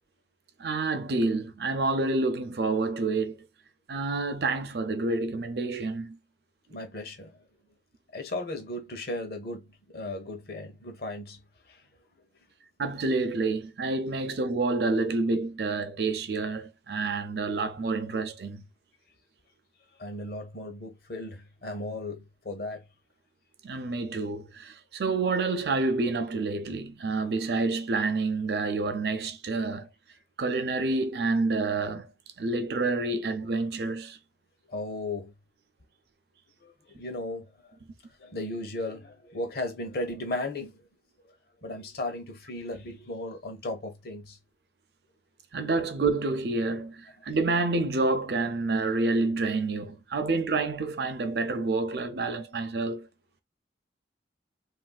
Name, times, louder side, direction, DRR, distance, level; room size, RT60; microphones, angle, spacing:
voice 1, 0.6-3.4 3.9-6.2 12.8-18.6 23.6-29.9 30.4-32.1 32.4-34.2 45.5-53.1, right 3 dB, 60° right, 0.5 m, -28 dB
voice 2, 6.7-7.4 8.1-11.4 11.7-11.8 20.0-22.8 34.7-35.3 36.6-37.5 38.2-40.8 41.6-44.4 50.2-50.3, left 2 dB, 60° left, 0.8 m, -36 dB
3.2 x 2.6 x 2.3 m
head